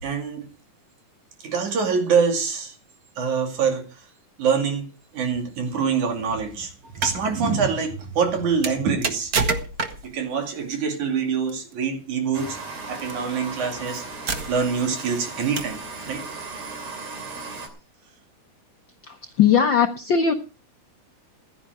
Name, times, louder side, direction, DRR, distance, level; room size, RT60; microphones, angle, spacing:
voice 1, 0.0-0.5 1.4-2.8 3.2-4.1 4.4-4.9 5.1-9.3 10.0-12.6 12.9-14.0 14.5-16.2, right 6 dB, 80° right, 4.0 m, -25 dB
sound 1, 6.8-7.2 8.6-10.2 11.5-11.7 13.0-13.1 13.7-13.8 14.3-14.8 15.6-15.9, right 4 dB, 45° right, 1.3 m, -27 dB
sound 2, 12.3-17.7, right 3 dB, 60° right, 4.0 m, -36 dB
voice 2, 19.1-20.3, left 7 dB, 65° left, 1.2 m, -19 dB
15.5 x 12.0 x 4.8 m
omnidirectional pair, 3.4 m